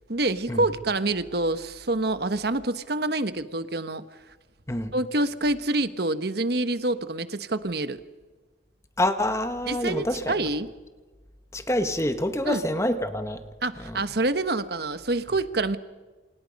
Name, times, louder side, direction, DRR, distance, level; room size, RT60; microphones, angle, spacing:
voice 1, 0.1-4.0 4.9-8.0 9.7-10.7 12.5-12.6 13.6-15.8, right 2 dB, 55° right, 11 dB, 1.3 m, -27 dB
voice 2, 9.0-10.5 11.5-13.4 13.8-14.0, left 1 dB, 15° left, 8 dB, 1.4 m, -26 dB
28.5 x 28.0 x 5.4 m, 1.3 s
head